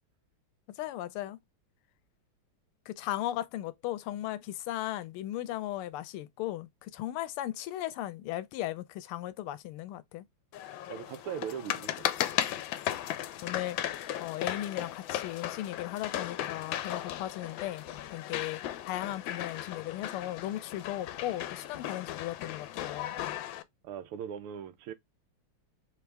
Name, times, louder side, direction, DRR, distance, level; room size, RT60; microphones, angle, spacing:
voice 1, 0.7-1.4 2.9-10.3 13.4-13.8 14.2-23.2, left 14 dB, 90° left, 1.5 m, -37 dB
sound 1, 10.5-23.6, left 12 dB, 75° left, 1.2 m, -36 dB
voice 2, 10.9-12.1 23.8-24.9, right 8 dB, 90° right, 1.6 m, -39 dB
3.5 x 3.5 x 3.3 m
omnidirectional pair, 2.4 m